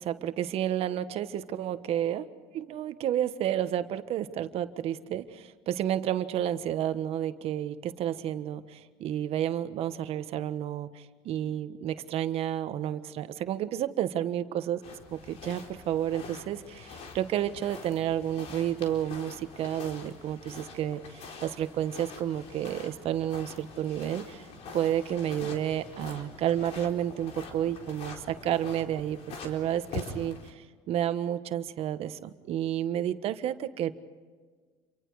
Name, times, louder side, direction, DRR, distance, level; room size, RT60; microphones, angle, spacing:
voice 1, 0.0-2.3 2.5-14.8 15.1-24.4 24.7-33.9, right 11 dB, 60° right, 11 dB, 1.4 m, -31 dB
sound 1, 14.8-30.5, left 4 dB, 65° left, 4.2 m, -45 dB
28.5 x 24.0 x 4.9 m, 1.5 s
supercardioid pair, 95°, 11 cm